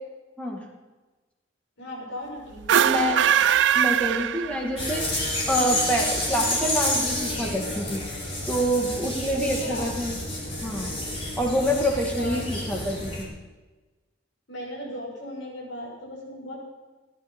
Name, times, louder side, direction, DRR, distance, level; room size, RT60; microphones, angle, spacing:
voice 1, 1.8-3.2 9.3-9.9 12.1-12.4 14.5-16.6, left 1 dB, 85° left, -3 dB, 5.8 m, -37 dB
sound 1, 2.6-4.9, right 9 dB, 70° right, 0.4 m, -21 dB
voice 2, 2.7-3.2 3.7-8.0 8.5-10.2 10.6-10.9 11.4-13.3, equal, 5° left, 0 dB, 2.3 m, -27 dB
sound 2, 4.8-13.2, left 1 dB, 35° left, 4.2 m, -29 dB
16.5 x 10.5 x 5.6 m, 1.2 s
head